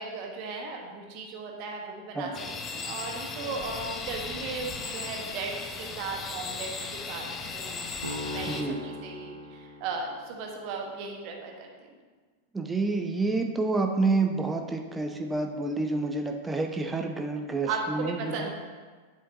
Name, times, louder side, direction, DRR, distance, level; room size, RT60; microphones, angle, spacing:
voice 1, 0.0-2.3 2.7-7.3 7.5-7.9 8.3-11.7 17.7-18.5, right 4 dB, 45° right, 1 dB, 1.3 m, -36 dB
sound 1, 2.3-8.6, left 4 dB, 25° left, 0.8 m, -37 dB
sound 2, 8.0-10.4, left 1 dB, 75° right, 1.0 m, -39 dB
voice 2, 8.5-8.8 12.5-18.5, right 3 dB, 10° right, 3 dB, 0.7 m, -28 dB
10.0 x 7.3 x 2.8 m, 1.4 s
figure-of-eight pair, 90°, 0 cm